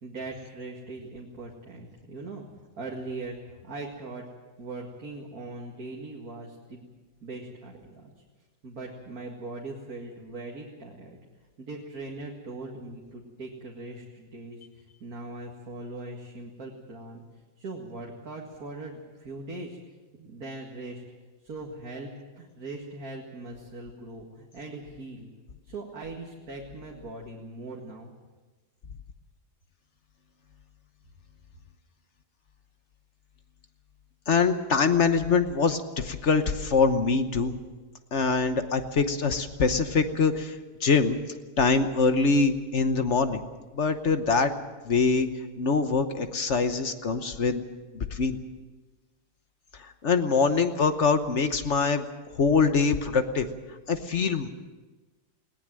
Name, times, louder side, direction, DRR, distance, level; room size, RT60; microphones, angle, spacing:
voice 1, 0.0-2.4 2.8-4.2 4.6-6.9 7.2-8.1 8.6-11.2 11.6-17.2 17.6-19.8 20.1-21.0 21.4-22.1 22.4-25.3 25.6-28.1, right 2 dB, 60° right, -1 dB, 2.5 m, -40 dB
voice 2, 34.3-37.5 38.1-41.2 41.6-43.4 43.7-44.5 44.9-45.3 45.6-47.6 47.9-48.4 49.8-52.0 52.3-53.5 53.9-54.5, left 4 dB, 50° left, 9 dB, 1.2 m, -24 dB
20.5 x 18.5 x 7.6 m, 1.3 s
omnidirectional pair, 1.8 m